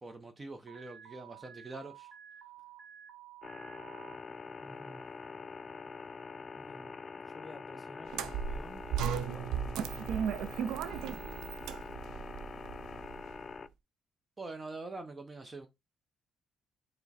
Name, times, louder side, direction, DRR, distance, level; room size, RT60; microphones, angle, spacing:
voice 1, 0.0-2.1 10.8-11.5 14.4-15.7, right 3 dB, 25° right, 0.6 m, -45 dB
Alarm, 0.7-4.2, right 9 dB, 70° right, 0.9 m, -52 dB
sound 1, 3.4-13.7, left 5 dB, 35° left, 0.3 m, -45 dB
voice 2, 4.6-5.0 6.5-7.0 7.3-9.7, left 1 dB, 15° left, 1.1 m, -53 dB
sound 2, 8.1-13.3, right 8 dB, 90° right, 0.3 m, -36 dB
4.7 x 2.0 x 4.1 m
cardioid pair, 90°, 0 cm